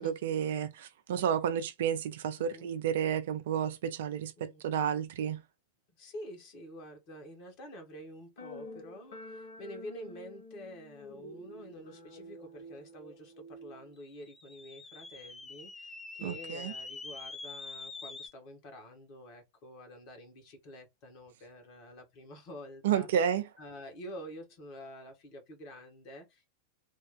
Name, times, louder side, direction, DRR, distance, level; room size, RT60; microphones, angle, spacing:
voice 1, 0.0-5.4 16.2-16.7 22.8-23.5, right 8 dB, 55° right, 0.6 m, -31 dB
voice 2, 6.0-23.1 23.6-26.5, equal, 45° left, 1.7 m, -48 dB
sound 1, 8.4-13.9, left 1 dB, 65° left, 1.4 m, -49 dB
sound 2, 14.0-18.3, left 3 dB, 10° left, 0.7 m, -45 dB
3.6 x 2.4 x 3.7 m
figure-of-eight pair, 90°, 0 cm